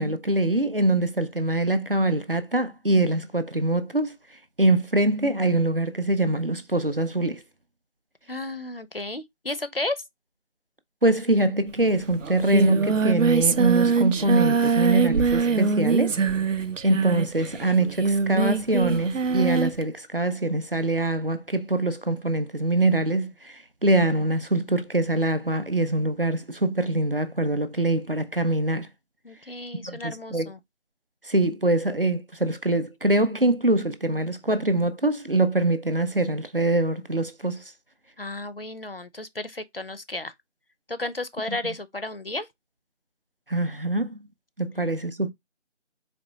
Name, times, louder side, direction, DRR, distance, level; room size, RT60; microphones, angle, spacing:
voice 1, 0.0-4.1 4.6-7.4 11.0-16.2 16.8-28.9 29.9-30.5 31.3-37.6 41.5-41.6 43.5-44.2 44.6-45.3, right 2 dB, 50° right, 0.5 m, -24 dB
voice 2, 8.3-10.0 29.2-30.6 38.2-40.3 40.9-42.5, left 2 dB, 50° left, 0.5 m, -33 dB
Singing, 11.8-11.9 12.1-19.8, right 5 dB, 90° right, 0.6 m, -23 dB
4.2 x 3.1 x 2.9 m
figure-of-eight pair, 175°, 37 cm